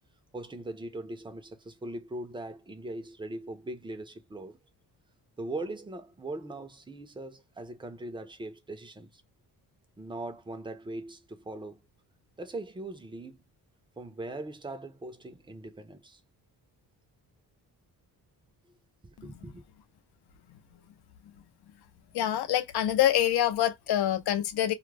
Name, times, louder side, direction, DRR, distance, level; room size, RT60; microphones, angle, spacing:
voice 1, 0.3-4.6 5.4-9.2 10.0-11.8 12.4-13.4 14.0-16.2 19.0-19.6, right 2 dB, 10° right, 0.5 m, -40 dB
voice 2, 22.1-24.7, left 11 dB, 70° left, 0.7 m, -25 dB
2.4 x 2.0 x 3.2 m
cardioid pair, 120°, 40 cm